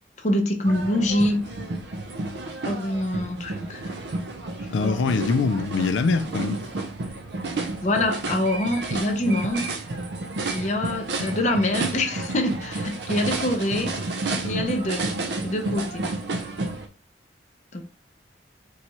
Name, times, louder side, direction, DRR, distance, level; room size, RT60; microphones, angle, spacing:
voice 1, 0.2-1.4 2.6-3.9 4.7-5.0 7.8-9.7 10.4-15.0 15.4-16.0 17.7-17.8, left 1 dB, 40° left, 0.6 m, -25 dB
sound 1, 0.6-16.9, right 2 dB, 65° right, 0.5 m, -31 dB
voice 2, 4.7-6.6, left 4 dB, 80° left, 0.4 m, -23 dB
4.1 x 2.3 x 2.9 m
head